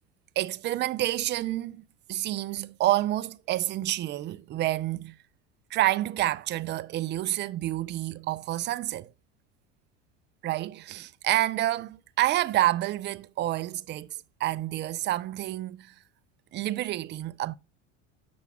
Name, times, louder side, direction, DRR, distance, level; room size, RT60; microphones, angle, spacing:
voice 1, 0.4-1.8 2.1-5.2 5.7-9.1 10.4-15.9 16.5-17.5, right 15 dB, 35° right, 0.4 m, -28 dB
10.0 x 6.9 x 2.3 m
supercardioid pair, 95°, 34 cm